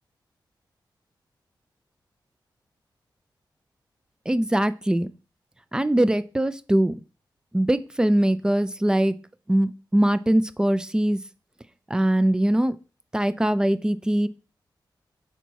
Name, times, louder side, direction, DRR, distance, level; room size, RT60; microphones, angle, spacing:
voice 1, 4.3-5.1 5.7-7.0 7.5-9.1 9.5-11.2 11.9-12.8 13.1-14.3, right 1 dB, 10° right, 14 dB, 0.4 m, -22 dB
5.7 x 4.0 x 4.6 m, 0.34 s
wide cardioid pair, 105°, 8 cm